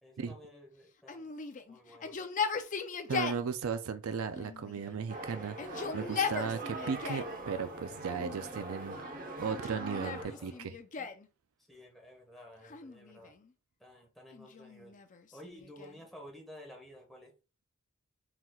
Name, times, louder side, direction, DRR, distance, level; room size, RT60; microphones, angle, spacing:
voice 1, 0.0-1.3 1.7-2.2 10.2-10.6 11.0-11.1 11.7-13.3 13.8-14.9 15.3-17.3, equal, ahead, 1.3 m, -52 dB
Yell, 1.1-3.5 4.3-5.1 5.5-7.4 8.1-8.8 9.5-11.3 12.6-13.5 14.3-16.1, left 5 dB, 35° left, 0.5 m, -38 dB
voice 2, 3.1-10.5, right 6 dB, 75° right, 0.4 m, -36 dB
sound 1, 5.1-10.2, right 2 dB, 40° right, 0.9 m, -42 dB
4.3 x 4.0 x 2.3 m
head